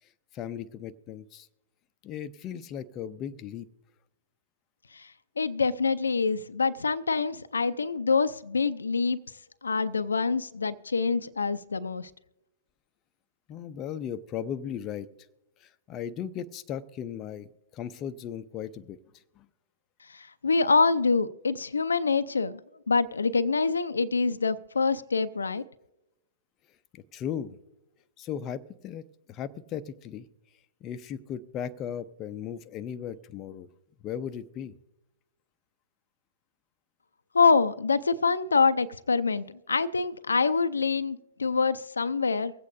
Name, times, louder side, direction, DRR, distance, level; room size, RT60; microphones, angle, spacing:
voice 1, 0.3-1.5 2.0-3.7 13.5-15.1 15.6-19.0 19.4-19.5 26.9-27.6 28.2-29.0 29.3-30.3 30.8-33.7 34.0-34.7, left 9 dB, 30° left, 11 dB, 0.5 m, -37 dB
voice 2, 5.4-9.2 9.6-12.1 20.4-22.6 22.9-25.6 37.3-42.5, left 4 dB, 85° left, 13 dB, 0.5 m, -25 dB
24.5 x 8.3 x 2.6 m, 0.95 s
figure-of-eight pair, 115°, 0 cm